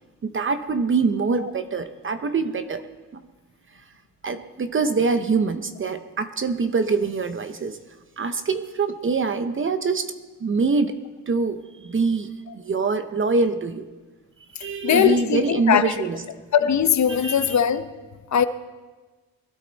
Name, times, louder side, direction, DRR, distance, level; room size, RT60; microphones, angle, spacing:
voice 1, 0.2-2.8 3.1-3.2 4.2-7.8 8.2-10.1 10.4-11.0 11.3-13.9 14.6-16.2 17.2-17.6, right 4 dB, 35° right, 0.9 m, -24 dB
voice 2, 14.8-15.8 16.5-17.9 18.3-18.4, left 8 dB, 50° left, 0.9 m, -20 dB
21.5 x 13.0 x 4.1 m
cardioid pair, 105°, 35 cm